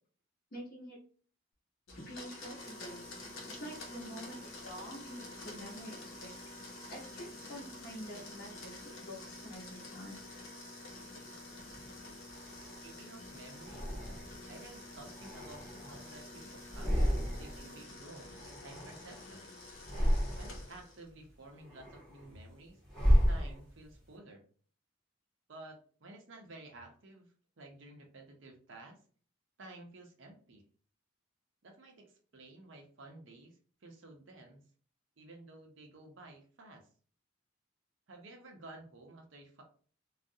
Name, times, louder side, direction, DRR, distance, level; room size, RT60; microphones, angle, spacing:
voice 1, 0.5-1.0 1.9-3.1 3.4-6.3 6.9-10.2, equal, 45° left, -2 dB, 0.8 m, -47 dB
Domestic sounds home sounds, 1.9-21.1, left 2 dB, 80° left, 0.6 m, -49 dB
sound 1, 2.6-17.9, equal, 25° right, 0.3 m, -55 dB
sound 2, 11.7-12.9 13.6-14.5 15.0-16.3 16.6-17.7 17.9-19.3 19.7-20.8 21.2-24.0, equal, 5° left, 0.9 m, -33 dB
voice 2, 12.8-13.9 14.5-19.4 20.4-22.8 23.3-24.4 25.5-29.0 29.6-30.6 31.6-34.6 35.2-36.9 38.1-39.6, right 2 dB, 65° right, 2 dB, 0.6 m, -53 dB
2.3 x 2.0 x 2.6 m, 0.43 s
head